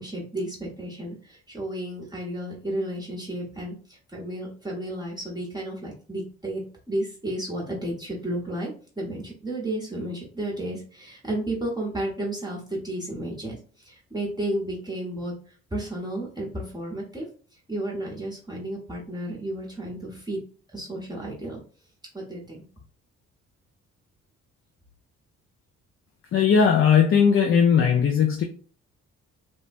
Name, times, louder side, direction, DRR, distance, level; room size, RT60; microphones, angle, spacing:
voice 1, 0.0-17.3 17.7-20.4 20.7-21.6 22.1-22.7, right 1 dB, 15° right, -3 dB, 0.9 m, -32 dB
voice 2, 26.3-28.4, left 7 dB, 45° left, 2 dB, 0.4 m, -18 dB
3.2 x 2.1 x 2.5 m, 0.41 s
cardioid pair, 90°, 30 cm